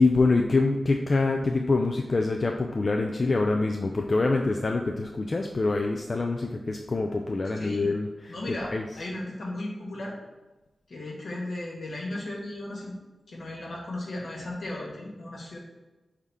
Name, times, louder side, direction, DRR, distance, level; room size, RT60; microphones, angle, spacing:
voice 1, 0.0-8.1 8.6-8.8, left 3 dB, 55° left, 2 dB, 0.4 m, -25 dB
voice 2, 7.5-7.9 8.3-10.2 10.9-13.0 13.3-15.6, left 1 dB, 85° left, -3 dB, 1.3 m, -36 dB
4.2 x 3.7 x 3.5 m, 1.1 s
cardioid pair, 50°, 0 cm